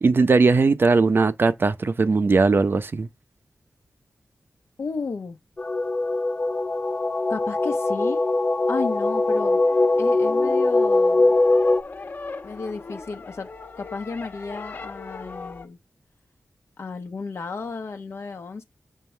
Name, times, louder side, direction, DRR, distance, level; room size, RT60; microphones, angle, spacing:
voice 1, 0.0-3.1, right 4 dB, 50° right, 0.8 m, -19 dB
voice 2, 4.8-5.4 7.3-8.2 8.7-9.6 10.0-11.3 12.4-13.5 13.8-15.8 16.8-18.6, left 4 dB, 65° left, 1.0 m, -33 dB
sound 1, 5.6-11.8, left 2 dB, 25° left, 0.7 m, -21 dB
sound 2, 8.6-15.7, left 3 dB, 45° left, 1.3 m, -40 dB
7.6 x 5.0 x 3.3 m
wide cardioid pair, 110°, 5 cm